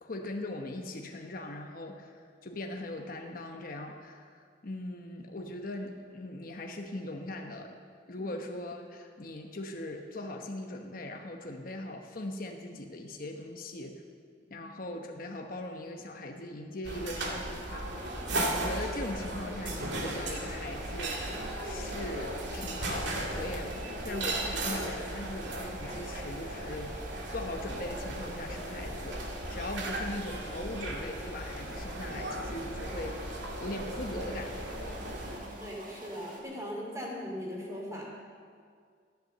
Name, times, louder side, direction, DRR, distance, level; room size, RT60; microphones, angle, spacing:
voice 1, 0.0-7.7 8.1-14.0 14.5-17.9 18.3-27.0 27.3-33.2 33.6-35.1, left 1 dB, 50° left, 3 dB, 1.0 m, -40 dB
sound 1, 16.8-35.4, right 1 dB, 70° right, 2.1 m, -36 dB
sound 2, 20.1-36.4, right 1 dB, 45° right, 1.8 m, -48 dB
voice 2, 35.2-38.1, equal, 15° right, -2 dB, 2.8 m, -40 dB
14.0 x 10.5 x 6.7 m, 2.1 s
head